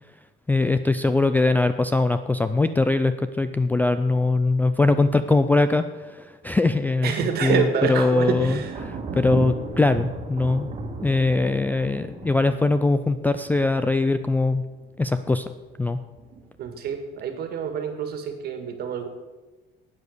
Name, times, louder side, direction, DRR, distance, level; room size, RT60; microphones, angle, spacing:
voice 1, 0.5-5.8 6.1-7.1 7.4-10.7 11.0-14.6 15.0-15.4 15.8-16.0, left 3 dB, 10° left, 10 dB, 0.3 m, -21 dB
voice 2, 7.0-8.8 16.6-19.1, right 7 dB, 50° right, 7 dB, 1.9 m, -27 dB
Thunder, 8.3-14.8 15.1-15.7 16.2-17.0, right 3 dB, 30° right, 1.7 m, -35 dB
12.0 x 8.6 x 6.4 m, 1.2 s
cardioid pair, 160°, 20 cm